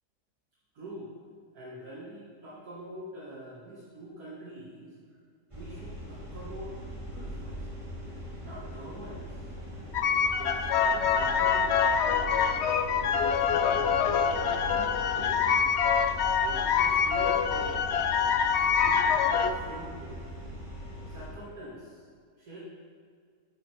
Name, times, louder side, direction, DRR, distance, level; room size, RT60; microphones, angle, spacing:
voice 1, 0.7-1.1 1.5-4.9 5.6-7.7 8.4-9.4 10.4-12.5 13.0-15.5 16.4-18.0 18.8-20.2 21.1-22.0 22.4-22.6, right 1 dB, 70° right, -8 dB, 2.2 m, -45 dB
sound 1, 5.5-21.3, equal, 20° right, 2.0 m, -41 dB
sound 2, 9.9-19.5, left 7 dB, 65° left, 0.6 m, -25 dB
10.0 x 5.1 x 6.2 m, 2.1 s
omnidirectional pair, 1.7 m